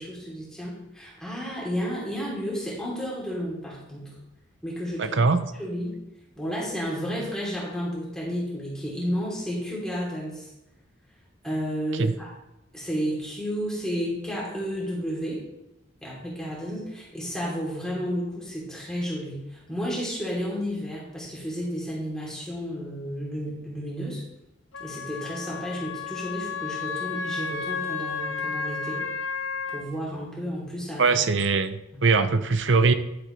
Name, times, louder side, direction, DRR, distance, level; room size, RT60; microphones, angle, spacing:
voice 1, 0.0-4.2 4.6-5.2 5.6-5.9 6.4-10.5 11.4-12.3 12.7-15.4 16.0-24.2 24.8-29.0 29.7-31.2 31.9-32.0, equal, 5° left, -5 dB, 3.0 m, -32 dB
voice 2, 5.0-5.4 11.9-12.1 31.0-32.9, right 4 dB, 65° right, 10 dB, 0.7 m, -21 dB
Wind instrument woodwind instrument, 24.7-29.8, left 5 dB, 75° left, 0.8 m, -32 dB
11.5 x 7.7 x 3.3 m, 0.91 s
head